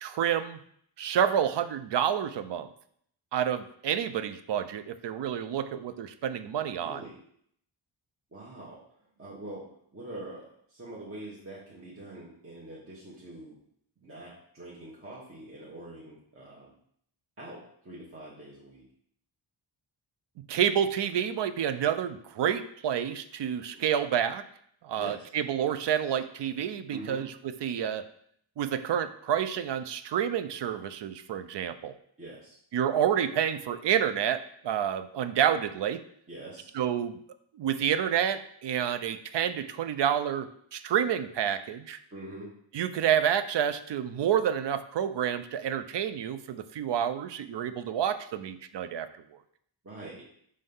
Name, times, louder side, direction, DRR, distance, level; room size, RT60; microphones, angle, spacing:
voice 1, 0.0-0.6 1.0-2.7 3.3-7.0 20.5-24.4 24.8-28.0 28.6-31.9 32.7-36.0 36.7-37.2 37.5-42.0 42.7-49.1, right 9 dB, 65° right, 11 dB, 0.5 m, -29 dB
voice 2, 6.8-7.2 8.3-8.8 9.2-13.6 14.0-16.7 17.4-18.8 23.7-23.8 25.0-25.2 26.9-27.2 32.2-32.6 36.3-36.7 42.1-42.5 49.8-50.2, right 1 dB, 30° right, -6 dB, 1.2 m, -44 dB
5.4 x 3.3 x 5.4 m, 0.66 s
wide cardioid pair, 140°, 47 cm